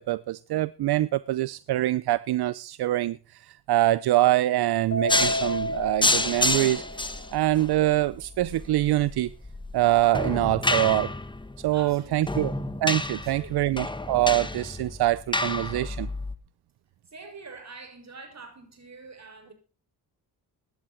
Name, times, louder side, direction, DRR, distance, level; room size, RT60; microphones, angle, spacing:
voice 1, 0.0-7.0 7.3-9.3 9.7-11.1 11.6-12.5 12.8-16.1, right 15 dB, 75° right, 0.6 m, -24 dB
Keyboard (musical), 4.9-7.4, equal, 35° left, 3.9 m, -31 dB
sound 1, 5.1-16.3, left 2 dB, 10° left, 1.6 m, -29 dB
voice 2, 11.7-12.5 13.1-13.7 17.0-19.5, right 4 dB, 45° right, 6.5 m, -45 dB
16.5 x 11.5 x 4.4 m
cardioid pair, 80°, 39 cm